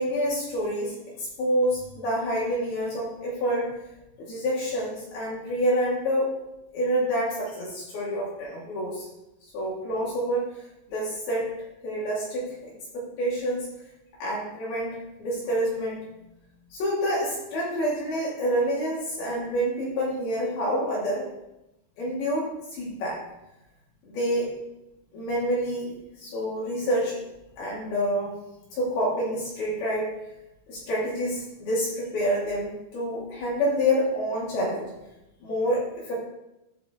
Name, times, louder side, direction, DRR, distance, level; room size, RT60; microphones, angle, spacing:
voice 1, 0.0-3.7 4.2-6.3 6.7-9.1 9.5-10.5 10.9-11.5 11.8-12.5 12.9-13.7 14.2-16.0 16.7-21.3 22.0-23.2 24.1-24.5 25.1-27.2 27.6-28.3 28.7-30.1 30.7-34.9 35.4-36.2, equal, 60° left, -6 dB, 3.7 m, -27 dB
14.0 x 6.0 x 2.9 m, 0.92 s
omnidirectional pair, 5.4 m